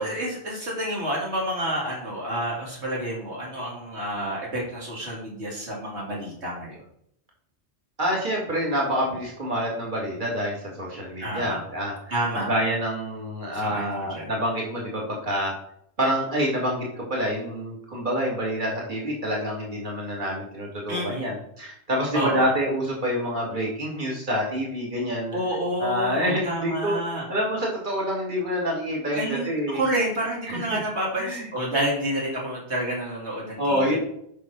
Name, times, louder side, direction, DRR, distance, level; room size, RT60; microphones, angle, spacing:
voice 1, 0.0-6.8 11.2-11.6 12.1-12.5 13.5-14.3 20.9-21.3 22.1-22.5 25.3-27.3 29.1-34.0, right 1 dB, 70° right, -4 dB, 2.9 m, -29 dB
voice 2, 8.0-15.5 16.0-25.4 25.8-27.0 27.3-29.8 30.5-30.8 31.2-31.5 33.6-34.0, equal, 45° right, -2 dB, 2.8 m, -27 dB
8.3 x 5.7 x 6.1 m, 0.71 s
omnidirectional pair, 1.2 m